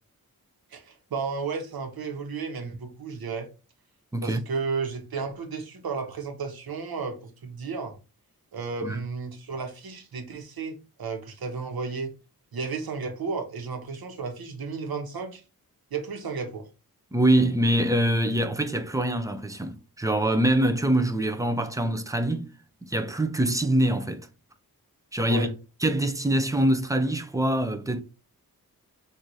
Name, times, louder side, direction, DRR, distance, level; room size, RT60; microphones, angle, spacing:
voice 1, 0.7-3.5 4.2-8.0 8.5-12.1 12.5-15.4 15.9-16.7 25.3-25.5, right 4 dB, 85° right, 1.0 m, -33 dB
voice 2, 17.1-22.5 22.8-24.3 25.1-25.5 25.8-28.0, right 1 dB, 10° right, 0.4 m, -24 dB
3.9 x 2.5 x 4.6 m
wide cardioid pair, 160°, 36 cm